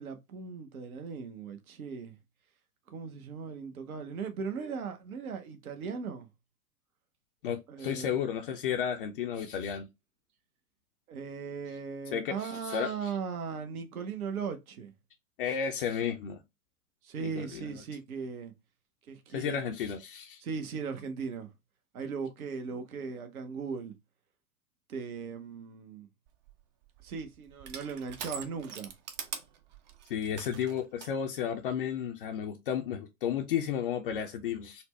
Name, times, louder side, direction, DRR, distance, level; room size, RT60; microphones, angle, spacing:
voice 1, 0.0-2.1 2.9-6.3 7.7-8.1 11.1-14.9 17.0-18.5 19.1-19.6 20.4-21.5 21.9-23.9 24.9-26.1 27.0-28.9, right 5 dB, 70° right, 0.8 m, -38 dB
voice 2, 7.4-9.9 12.1-13.1 15.4-16.4 17.2-17.7 19.3-20.4 30.1-34.8, left 8 dB, 40° left, 0.5 m, -33 dB
Crushing, 26.3-31.1, right 7 dB, 30° right, 0.5 m, -44 dB
4.1 x 2.1 x 3.1 m
figure-of-eight pair, 105°, 45 cm